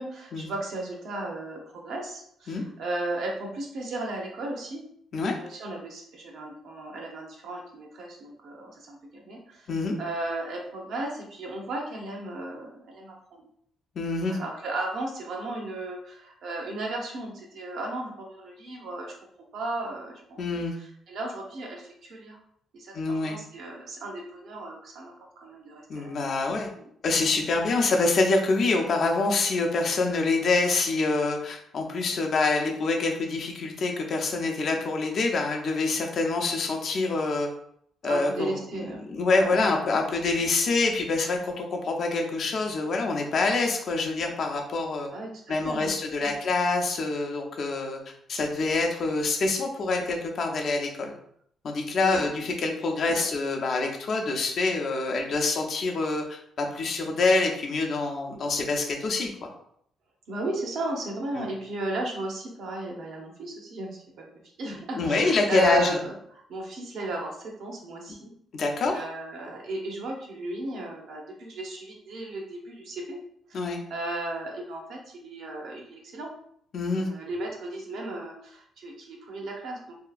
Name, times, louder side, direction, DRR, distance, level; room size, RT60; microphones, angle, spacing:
voice 1, 0.0-4.8 5.2-9.7 10.0-13.5 14.2-19.1 19.5-22.4 22.7-26.3 26.8-26.9 38.0-39.0 39.3-39.6 45.1-45.9 46.2-46.3 52.0-52.3 53.1-53.2 60.3-64.2 64.6-68.3 68.6-73.2 73.5-76.3 76.9-80.0, right 2 dB, 75° right, 0 dB, 0.7 m, -35 dB
voice 2, 14.0-14.4 20.4-20.7 22.9-23.4 25.9-26.7 27.0-37.5 38.0-38.6 39.1-45.1 45.5-48.0 48.3-51.1 51.6-59.3 61.4-61.5 65.0-66.0 68.5-69.0 73.5-73.8 76.7-77.1, left 3 dB, 60° left, 2 dB, 0.5 m, -26 dB
2.7 x 2.4 x 2.3 m, 0.68 s
cardioid pair, 90°, 0 cm